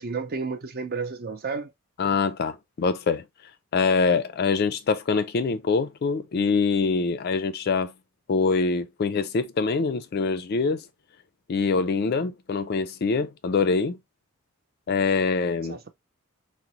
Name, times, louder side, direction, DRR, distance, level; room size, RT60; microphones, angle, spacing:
voice 1, 0.0-1.7 15.7-15.9, right 4 dB, 45° right, 0.5 m, -31 dB
voice 2, 2.0-3.2 3.7-7.9 8.3-10.8 11.5-14.0 14.9-15.8, left 4 dB, 45° left, 0.3 m, -24 dB
3.8 x 2.0 x 2.8 m
head